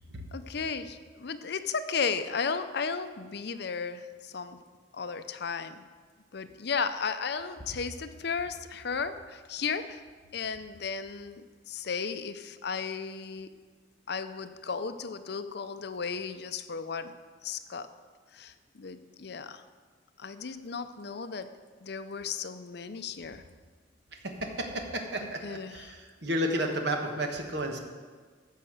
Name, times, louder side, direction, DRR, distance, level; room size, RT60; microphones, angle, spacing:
voice 1, 0.3-4.6 4.9-5.9 6.3-10.0 10.3-13.5 14.1-17.9 18.3-19.6 20.2-23.4 25.2-25.9, left 5 dB, 60° left, 11 dB, 0.6 m, -35 dB
voice 2, 24.6-25.9 26.2-27.8, right 1 dB, 65° right, 3 dB, 1.5 m, -31 dB
15.0 x 5.7 x 6.5 m, 1.5 s
head